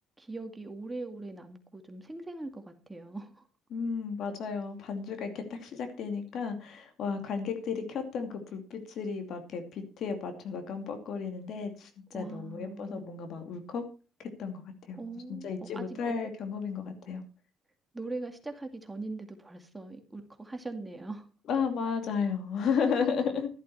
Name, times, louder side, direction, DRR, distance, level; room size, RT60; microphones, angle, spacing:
voice 1, 0.2-3.4 12.1-13.1 15.0-16.0 17.9-21.3, right 2 dB, 15° right, 2.2 m, -41 dB
voice 2, 3.7-13.8 14.2-15.0 15.3-17.2 21.4-23.5, left 6 dB, 65° left, 2.6 m, -33 dB
12.0 x 11.0 x 4.2 m
supercardioid pair, 85°, 0 cm